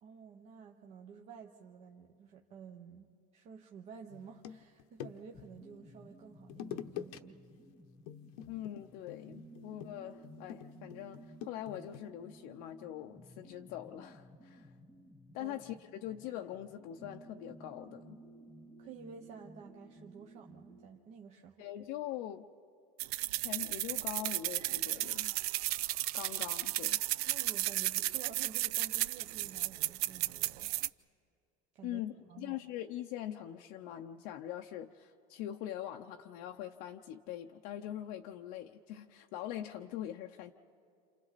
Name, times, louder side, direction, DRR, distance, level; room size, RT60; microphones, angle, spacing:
voice 1, 0.0-7.5 15.4-15.6 18.8-21.6 27.2-30.7 31.7-32.0 32.3-32.6, right 6 dB, 35° right, 3 dB, 1.0 m, -51 dB
sound 1, 4.1-5.5 6.5-7.2 7.5-7.7 8.1-12.1, left 10 dB, 75° left, 1.0 m, -46 dB
sound 2, 5.3-20.9, right 1 dB, 10° left, 1.2 m, -56 dB
voice 2, 8.5-14.7 15.3-18.2 21.6-22.5 23.3-25.4 26.1-27.0 31.8-40.5, left 12 dB, 50° left, 4 dB, 0.7 m, -43 dB
sound 3, 23.0-30.9, right 17 dB, 80° right, 0.5 m, -34 dB
28.5 x 28.5 x 4.1 m, 2.6 s
cardioid pair, 170°, 19 cm